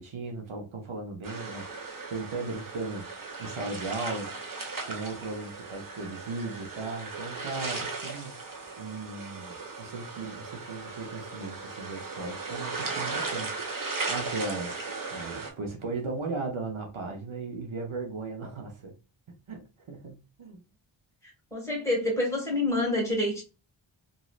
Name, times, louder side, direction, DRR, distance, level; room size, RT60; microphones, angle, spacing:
voice 1, 0.0-1.6 2.1-4.3 4.8-14.8 15.1-18.9 19.5-20.6, right 3 dB, 75° right, 0.8 m, -37 dB
sound 1, 1.2-15.5, right 4 dB, 45° right, 0.8 m, -37 dB
voice 2, 21.5-23.4, left 1 dB, 5° left, 1.7 m, -27 dB
3.1 x 2.6 x 2.4 m
wide cardioid pair, 80°, 49 cm